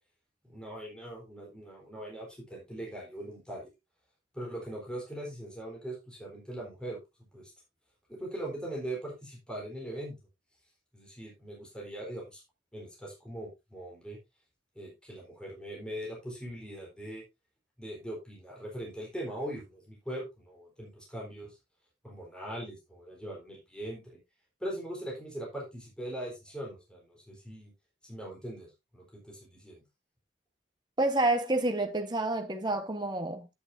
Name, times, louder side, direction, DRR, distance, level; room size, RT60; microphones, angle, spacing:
voice 1, 0.4-3.7 4.3-7.0 7.3-7.5 8.1-10.2 10.9-12.4 12.7-14.2 14.8-17.2 17.8-21.6 22.0-24.2 24.6-27.7 28.0-29.8, right 1 dB, 5° left, 3.8 m, -41 dB
voice 2, 31.0-33.5, right 2 dB, 20° right, 1.2 m, -28 dB
9.8 x 8.7 x 2.7 m
head